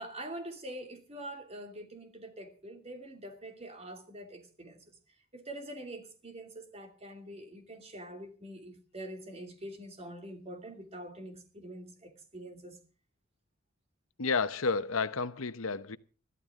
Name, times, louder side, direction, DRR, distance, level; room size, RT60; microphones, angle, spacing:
voice 1, 0.0-12.8, right 1 dB, 30° right, 2.8 m, -45 dB
voice 2, 14.2-16.0, left 4 dB, 85° left, 0.9 m, -31 dB
22.0 x 14.0 x 3.7 m
head